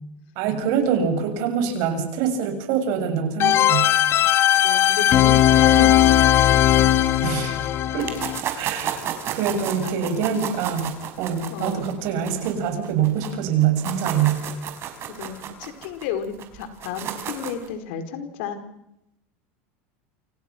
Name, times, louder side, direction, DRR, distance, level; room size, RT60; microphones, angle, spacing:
voice 1, 0.3-3.9 7.2-7.6 7.9-8.1 8.6-14.4, right 8 dB, 60° right, 6 dB, 6.7 m, -24 dB
sound 1, 3.4-8.4, left 12 dB, 40° left, 1.3 m, -17 dB
voice 2, 4.5-6.3 9.8-10.3 11.5-11.9 15.2-18.6, left 7 dB, 70° left, 8 dB, 4.7 m, -32 dB
sound 2, 8.0-13.3 13.6-17.7, right 9 dB, 40° right, 4.6 m, -32 dB
29.0 x 26.5 x 6.2 m, 0.81 s
supercardioid pair, 130°, 6 cm